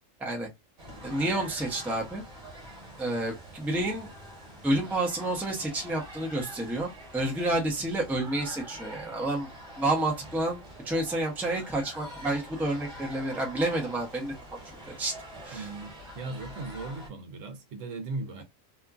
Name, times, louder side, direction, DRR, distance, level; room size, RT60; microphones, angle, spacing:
sound 1, 0.8-17.1, equal, 35° right, 1.3 m, -45 dB
voice 1, 1.0-2.2 3.0-4.1 4.6-9.5 9.8-10.6 10.8-14.6 15.0-15.1 15.4-15.7, right 1 dB, ahead, 0.6 m, -29 dB
voice 2, 15.5-18.4, right 3 dB, 80° right, 1.1 m, -38 dB
2.8 x 2.4 x 2.3 m
omnidirectional pair, 1.3 m